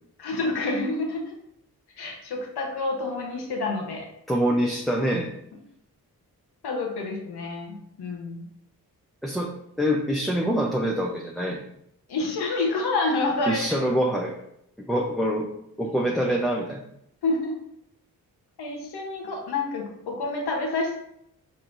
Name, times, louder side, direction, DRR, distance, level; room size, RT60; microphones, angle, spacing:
voice 1, 0.2-1.3 2.0-4.1 6.6-8.4 12.1-13.6 17.2-17.6 18.6-21.0, left 3 dB, 75° left, 0 dB, 1.1 m, -28 dB
voice 2, 4.3-5.3 9.2-9.5 9.8-11.6 13.5-14.3 14.8-15.5 15.8-16.8, equal, ahead, -1 dB, 0.6 m, -25 dB
4.4 x 4.0 x 2.6 m, 0.75 s
supercardioid pair, 40°, 40 cm